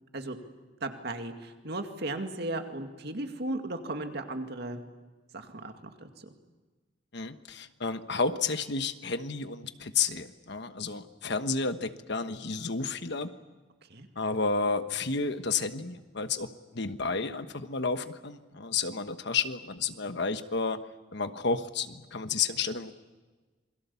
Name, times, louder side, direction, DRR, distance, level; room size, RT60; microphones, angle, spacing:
voice 1, 0.8-4.8 5.3-6.3 13.9-14.1, right 2 dB, 60° right, 6 dB, 2.2 m, -36 dB
voice 2, 7.1-13.3 14.1-16.5 16.7-20.8 21.1-22.9, left 4 dB, 65° left, 10 dB, 1.3 m, -31 dB
27.5 x 22.5 x 7.1 m, 1.3 s
head